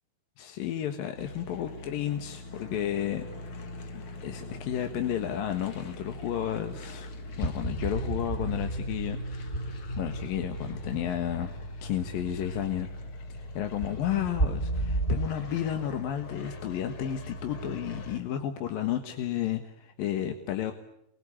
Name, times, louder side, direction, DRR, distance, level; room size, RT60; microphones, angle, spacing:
voice 1, 0.4-3.2 3.9-7.1 7.4-9.2 10.0-11.5 11.8-12.9 13.4-20.7, left 10 dB, 65° left, 6 dB, 3.0 m, -32 dB
sound 1, 1.1-18.2, left 1 dB, 45° left, 1.9 m, -42 dB
sound 2, 6.9-15.3, right 2 dB, 15° left, 2.0 m, -34 dB
28.5 x 22.0 x 8.7 m, 0.81 s
omnidirectional pair, 4.5 m